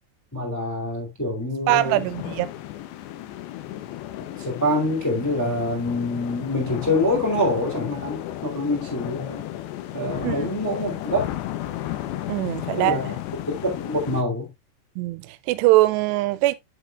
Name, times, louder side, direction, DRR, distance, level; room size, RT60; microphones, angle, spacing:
voice 1, 0.3-2.1 4.2-9.5 9.9-11.3 12.8-13.1 13.5-14.5, left 1 dB, 5° left, 1.8 m, -25 dB
sound 1, 1.7-14.2, left 13 dB, 85° left, 3.0 m, -34 dB
voice 2, 1.7-2.5 10.2-10.5 12.3-13.0 15.0-16.5, right 18 dB, 85° right, 2.7 m, -22 dB
7.8 x 7.1 x 2.4 m
omnidirectional pair, 4.8 m